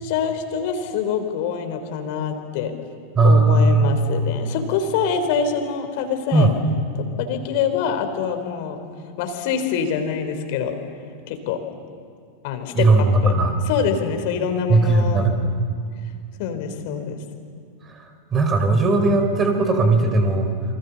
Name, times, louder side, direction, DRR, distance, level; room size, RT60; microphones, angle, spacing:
voice 1, 0.0-2.7 3.2-6.5 7.0-8.8 9.2-10.8 11.3-11.6 12.4-13.3 13.7-15.3 16.4-17.2, left 7 dB, 50° left, 7 dB, 3.6 m, -25 dB
voice 2, 3.1-4.0 6.3-6.5 12.7-13.5 14.7-15.4 17.9-18.0 18.3-20.5, right 2 dB, 25° right, 5 dB, 4.9 m, -17 dB
29.0 x 26.5 x 7.1 m, 2.2 s
figure-of-eight pair, 90°, 0 cm